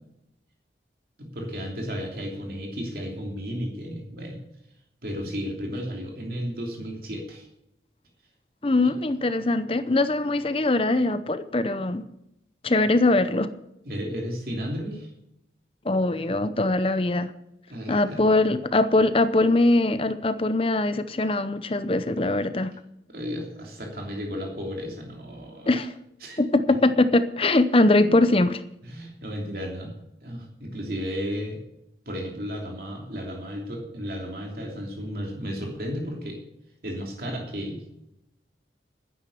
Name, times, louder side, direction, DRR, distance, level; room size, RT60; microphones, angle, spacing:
voice 1, 1.2-4.4 5.0-7.5 8.8-8.9 13.8-15.1 17.7-18.2 23.1-25.8 26.2-26.4 28.0-28.1 28.8-29.9 30.2-31.6 32.0-36.4 36.8-37.8, equal, 55° right, 0 dB, 3.0 m, -33 dB
voice 2, 8.6-12.1 12.6-13.5 15.8-17.3 17.9-22.7 25.7-25.9 26.4-28.6, left 2 dB, 30° left, 12 dB, 0.7 m, -22 dB
11.5 x 10.0 x 7.0 m, 0.83 s
head